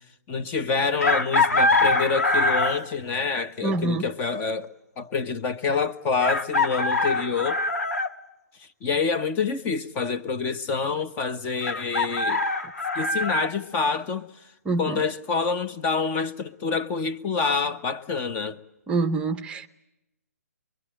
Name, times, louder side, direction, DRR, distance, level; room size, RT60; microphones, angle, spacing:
voice 1, 0.3-4.7 5.0-7.6 8.8-12.4 12.9-14.3 14.8-18.6, left 5 dB, 20° left, 1.1 m, -27 dB
Chicken rooster, 1.0-2.9 4.6-4.7 6.2-8.1 11.6-13.5, left 2 dB, 80° left, 1.9 m, -23 dB
voice 2, 3.6-4.1 14.7-15.0 18.9-19.7, right 3 dB, 10° right, 0.9 m, -26 dB
24.0 x 22.5 x 9.0 m
figure-of-eight pair, 135°, 8 cm